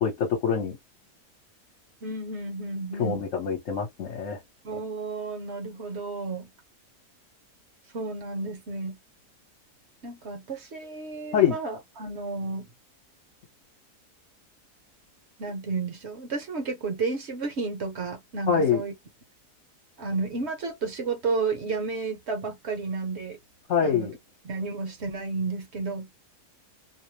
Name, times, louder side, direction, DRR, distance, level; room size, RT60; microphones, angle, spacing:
voice 1, 0.0-0.8 3.0-4.4 11.3-11.6 18.5-18.8 23.7-24.1, left 7 dB, 55° left, 1.2 m, -24 dB
voice 2, 2.0-3.2 4.6-6.5 7.9-9.0 10.0-12.7 15.4-18.9 20.0-23.4 23.8-24.1 24.4-26.1, right 4 dB, 50° right, 1.0 m, -32 dB
2.8 x 2.1 x 3.1 m
omnidirectional pair, 1.7 m